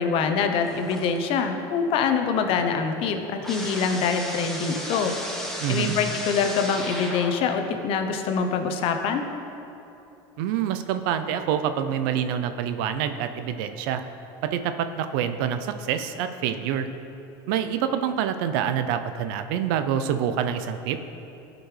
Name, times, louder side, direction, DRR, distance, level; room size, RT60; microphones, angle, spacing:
voice 1, 0.0-5.1 5.7-9.2, left 5 dB, 55° left, 6 dB, 0.7 m, -25 dB
sound 1, 0.6-1.4 1.8-7.6, equal, 5° left, 1.1 m, -36 dB
voice 2, 5.6-6.0 10.4-14.0 14.4-16.9 17.5-21.0, right 9 dB, 75° right, 9 dB, 0.5 m, -26 dB
12.5 x 5.1 x 3.2 m, 2.9 s
supercardioid pair, 125°, 12 cm